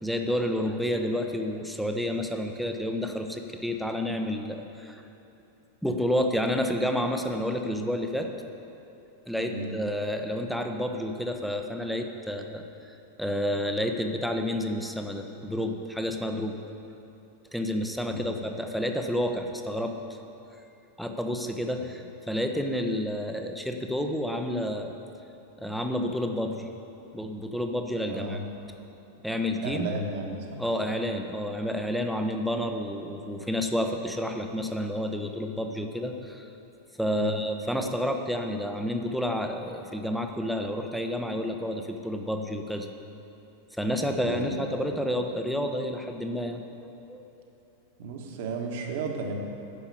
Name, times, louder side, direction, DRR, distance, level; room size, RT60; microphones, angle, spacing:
voice 1, 0.0-5.0 5.8-8.3 9.3-16.7 17.5-20.2 21.0-24.9 25.6-26.7 27.1-28.4 29.2-29.9 30.6-36.5 37.0-42.9 43.8-47.2, equal, ahead, 4 dB, 0.9 m, -30 dB
voice 2, 18.0-18.4 28.1-28.5 29.6-30.6 37.1-37.3 44.2-44.5 48.0-49.4, right 2 dB, 50° right, 2 dB, 1.5 m, -33 dB
9.9 x 7.1 x 8.4 m, 2.9 s
figure-of-eight pair, 90°, 0 cm